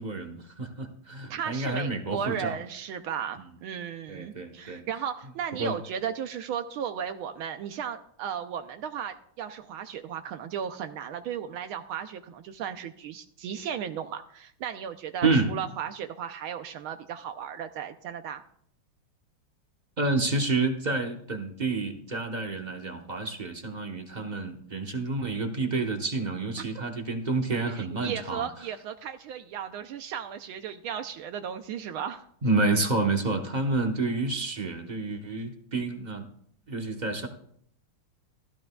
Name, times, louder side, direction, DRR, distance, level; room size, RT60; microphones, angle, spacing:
voice 1, 0.0-2.6 4.1-4.8 5.6-5.8 15.2-15.6 20.0-28.5 32.4-36.3 36.7-37.3, right 3 dB, 35° right, 4 dB, 0.7 m, -29 dB
voice 2, 1.3-18.4 26.6-26.7 27.7-32.3 33.3-33.4, right 8 dB, 80° right, 8 dB, 1.5 m, -35 dB
15.5 x 14.5 x 2.3 m, 0.65 s
omnidirectional pair, 2.3 m